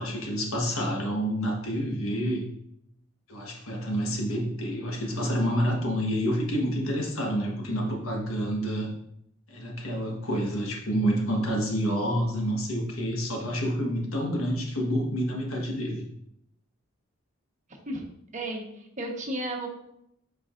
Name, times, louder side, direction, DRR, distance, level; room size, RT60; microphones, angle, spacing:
voice 1, 0.0-2.5 3.3-8.9 9.5-16.0, equal, 90° left, 0 dB, 1.4 m, -28 dB
voice 2, 18.3-19.7, right 1 dB, 35° right, 0 dB, 1.2 m, -33 dB
7.9 x 4.9 x 2.5 m, 0.75 s
head